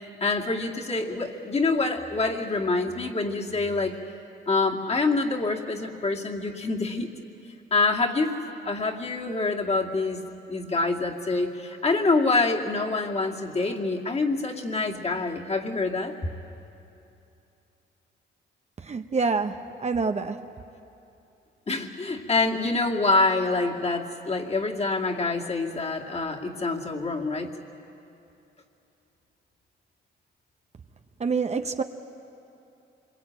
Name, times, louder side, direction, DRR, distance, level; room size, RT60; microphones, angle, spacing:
voice 1, 0.2-4.0 4.5-7.1 7.7-8.3 8.6-10.2 10.5-16.1 21.7-27.5, left 3 dB, 30° left, 0 dB, 2.4 m, -26 dB
voice 2, 18.8-20.4 31.2-31.8, right 4 dB, 35° right, 6 dB, 1.0 m, -26 dB
26.0 x 22.0 x 9.0 m, 2.8 s
cardioid pair, 90°, 20 cm